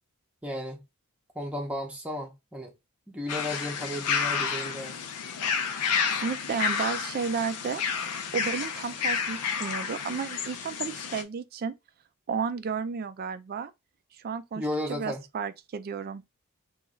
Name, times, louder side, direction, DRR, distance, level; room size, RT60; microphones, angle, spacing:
voice 1, 0.4-0.8 1.3-2.7 3.1-5.1 14.6-15.2, left 1 dB, 5° right, 0.6 m, -34 dB
sound 1, 3.3-11.2, left 6 dB, 90° left, 0.5 m, -30 dB
voice 2, 5.9-7.8 8.3-11.7 12.3-13.7 14.2-14.6 14.9-16.2, right 6 dB, 40° right, 0.3 m, -32 dB
3.0 x 2.3 x 3.6 m
head